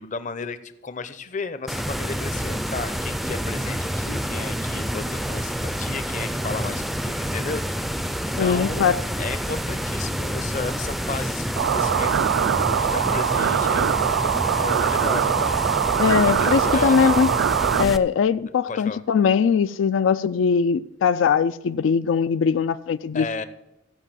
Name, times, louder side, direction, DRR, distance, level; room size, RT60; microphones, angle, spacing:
voice 1, 0.0-7.9 8.2-8.9 9.2-12.1 12.5-12.6 12.9-15.6 16.2-17.2 18.7-19.0 23.1-23.4, left 4 dB, 40° left, 0.6 m, -33 dB
sound 1, 1.7-18.0, equal, ahead, 0.3 m, -28 dB
voice 2, 8.4-9.0 16.0-17.3 17.8-23.3, left 6 dB, 85° left, 0.4 m, -21 dB
sound 2, 11.6-17.8, right 9 dB, 85° right, 0.3 m, -22 dB
15.0 x 5.4 x 7.4 m
head